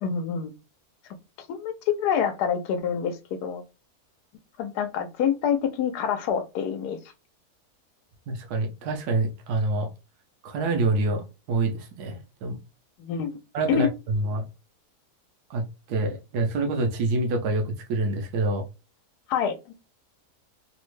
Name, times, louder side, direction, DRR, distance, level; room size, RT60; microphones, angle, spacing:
voice 1, 0.0-0.5 1.5-1.7 2.0-3.6 4.6-7.0 13.0-13.4 13.7-13.9 19.3-19.7, left 8 dB, 85° left, 9 dB, 1.1 m, -26 dB
voice 2, 8.3-9.9 10.4-11.2 11.5-12.6 13.5-14.4 15.5-18.6, right 2 dB, 90° right, 4 dB, 1.2 m, -26 dB
3.3 x 2.1 x 3.1 m, 0.28 s
omnidirectional pair, 1.7 m